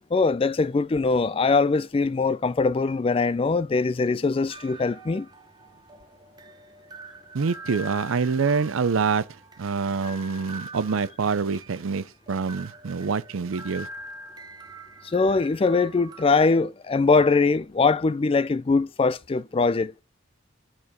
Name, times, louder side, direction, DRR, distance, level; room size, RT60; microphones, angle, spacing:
voice 1, 0.1-5.3 15.0-19.9, left 4 dB, 25° left, 0.3 m, -22 dB
sound 1, 4.5-16.3, right 1 dB, 20° right, 0.7 m, -44 dB
voice 2, 7.3-9.2 9.6-13.9, right 5 dB, 80° right, 0.5 m, -26 dB
8.7 x 4.4 x 5.3 m
head